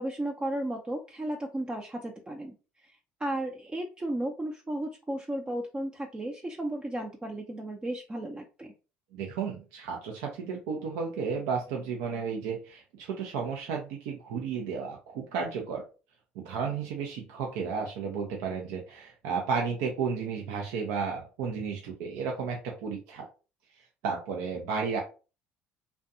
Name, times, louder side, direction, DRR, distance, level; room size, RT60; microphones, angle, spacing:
voice 1, 0.0-2.5 2.8-8.7, right 1 dB, 15° right, 1 dB, 0.5 m, -34 dB
voice 2, 9.1-15.8 16.4-23.3 24.0-25.0, right 5 dB, 75° right, 1 dB, 0.5 m, -33 dB
2.5 x 2.2 x 2.5 m, 0.34 s
hypercardioid pair, 70°, 6 cm